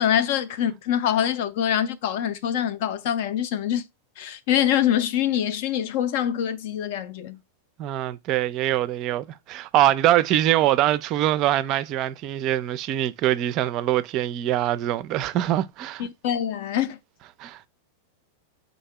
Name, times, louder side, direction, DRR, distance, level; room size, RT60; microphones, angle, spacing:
voice 1, 0.0-3.8 4.2-7.4 16.0-17.0, left 10 dB, 50° left, 0.5 m, -24 dB
voice 2, 7.8-16.0 17.4-17.7, right 13 dB, 40° right, 0.4 m, -23 dB
4.0 x 2.7 x 4.5 m
figure-of-eight pair, 90°, 0 cm